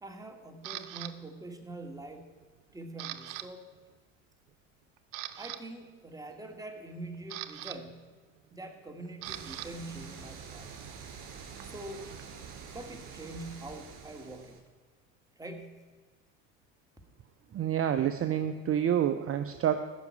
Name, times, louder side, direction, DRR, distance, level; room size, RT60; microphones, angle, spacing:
voice 1, 0.0-2.3 2.7-3.7 5.4-8.0 8.5-10.7 11.6-12.1 12.7-14.6 15.4-15.9, right 2 dB, 10° right, 4 dB, 2.1 m, -44 dB
Camera, 0.6-1.1 1.7-2.1 2.4-3.5 3.7-3.9 4.5-4.6 5.0-5.6 6.8-9.7 10.0-12.6, right 14 dB, 70° right, 0.9 m, -43 dB
sound 1, 9.2-14.6, right 6 dB, 55° right, 3.3 m, -46 dB
voice 2, 17.5-19.8, right 10 dB, 35° right, 9 dB, 0.8 m, -28 dB
14.0 x 6.2 x 9.6 m, 1.4 s
hypercardioid pair, 80°, 38 cm